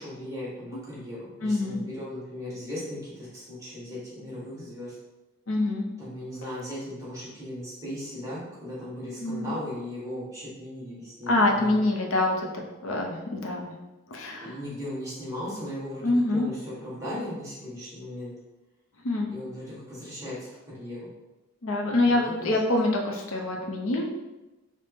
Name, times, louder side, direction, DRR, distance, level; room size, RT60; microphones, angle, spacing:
voice 1, 0.0-4.9 6.0-11.8 14.4-16.0 16.3-18.3 19.3-20.3 20.7-21.1 22.0-22.6, left 1 dB, 15° right, -9 dB, 1.2 m, -37 dB
voice 2, 1.4-1.8 5.5-5.9 9.2-9.5 11.3-12.4 12.8-13.7 14.1-14.5 16.0-16.5 19.0-19.3 21.6-24.0, left 2 dB, 65° left, 0 dB, 0.5 m, -25 dB
4.1 x 2.0 x 3.4 m, 1.0 s
head